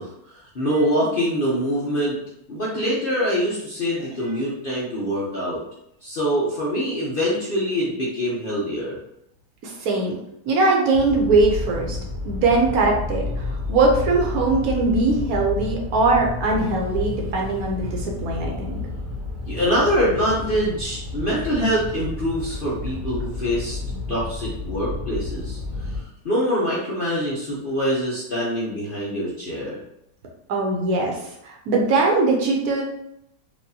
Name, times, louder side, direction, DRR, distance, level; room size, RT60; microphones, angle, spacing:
voice 1, 0.0-2.2 2.5-5.6 6.0-9.0 19.5-23.8 24.1-29.8, equal, 50° left, -6 dB, 0.6 m, -24 dB
voice 2, 9.6-10.1 10.5-12.0 12.2-18.8 30.5-31.2 31.4-32.8, right 3 dB, 65° right, 0 dB, 1.1 m, -21 dB
sound 1, 10.9-26.0, left 3 dB, 85° right, 1.4 m, -31 dB
4.6 x 2.5 x 2.7 m, 0.79 s
omnidirectional pair, 1.8 m